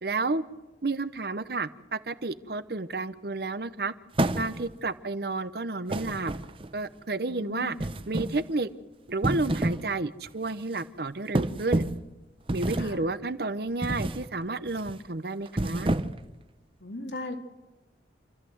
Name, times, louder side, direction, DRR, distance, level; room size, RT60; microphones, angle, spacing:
voice 1, 0.0-0.4 0.8-3.9 4.4-6.3 6.7-7.8 8.1-8.7 9.1-11.8 12.5-15.9, right 3 dB, 60° right, 14 dB, 0.9 m, -31 dB
sound 1, 4.1-4.8 5.9-6.8 7.8-8.5 9.1-9.9 10.3-10.5 11.3-12.1 12.5-13.1 13.8-14.3 14.7-14.9 15.5-16.3, right 1 dB, 30° right, 0.7 m, -29 dB
voice 2, 7.3-7.9 12.8-13.0 16.8-17.3, left 2 dB, 80° left, 4 dB, 2.5 m, -38 dB
27.5 x 13.5 x 7.9 m, 1.2 s
head